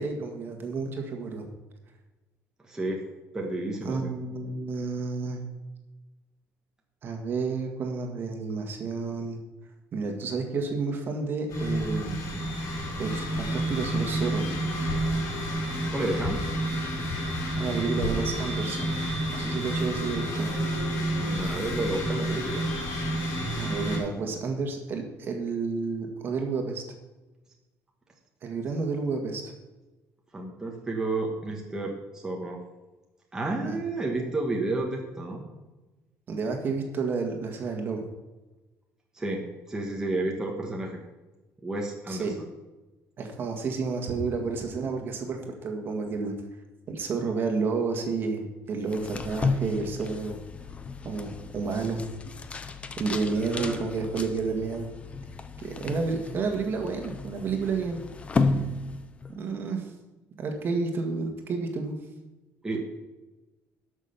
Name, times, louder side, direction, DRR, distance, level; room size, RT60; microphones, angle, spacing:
voice 1, 0.0-1.5 3.9-5.4 7.0-9.4 9.9-12.2 13.0-14.5 17.6-18.9 19.3-20.5 23.6-26.8 28.4-29.4 33.6-33.8 36.3-38.0 42.1-42.3 43.2-46.3 46.9-50.4 51.0-52.0 53.0-54.9 55.6-58.0 59.4-59.9 60.4-62.0, right 4 dB, 40° right, 3 dB, 1.8 m, -30 dB
voice 2, 2.7-3.0 3.3-4.1 15.9-16.4 21.2-22.6 30.3-32.6 33.3-35.5 39.1-39.4 39.7-41.0 41.6-42.3 53.3-53.8 62.6-62.8, right 2 dB, 10° right, 0 dB, 1.4 m, -31 dB
sound 1, 11.5-24.0, right 1 dB, 75° left, 4.2 m, -29 dB
sound 2, 48.8-59.4, left 3 dB, 20° left, 0.7 m, -33 dB
12.0 x 6.4 x 5.8 m, 1.1 s
cardioid pair, 150°, 6 cm